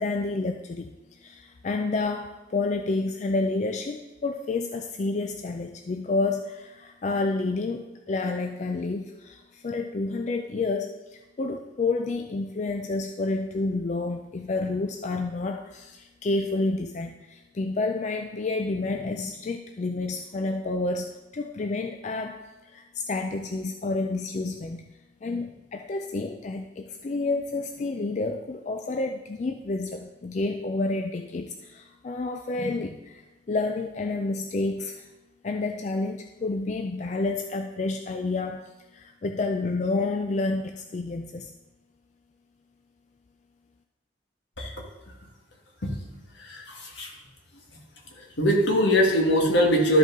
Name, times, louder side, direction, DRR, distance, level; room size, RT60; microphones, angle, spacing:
voice 1, 0.0-24.8 25.2-35.1 35.4-38.6 38.9-41.5, left 3 dB, 40° left, 5 dB, 0.3 m, -29 dB
voice 2, 46.4-47.1 48.1-50.0, equal, 75° left, 0 dB, 1.6 m, -22 dB
12.0 x 5.2 x 3.8 m, 1.1 s
head